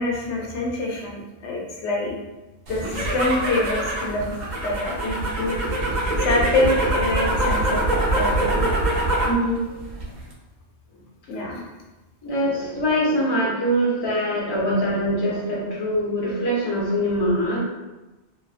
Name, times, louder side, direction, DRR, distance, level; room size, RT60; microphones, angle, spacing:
voice 1, 0.0-2.1 2.7-4.3 4.6-5.8 6.2-8.7 11.3-11.7, left 2 dB, 85° left, -1 dB, 0.9 m, -26 dB
sound 1, 2.7-9.4 9.8-10.3, right 1 dB, 50° right, 0.6 m, -24 dB
voice 2, 9.2-9.6 12.2-17.6, equal, 25° left, -6 dB, 0.6 m, -23 dB
2.4 x 2.4 x 2.4 m, 1.1 s
omnidirectional pair, 1.1 m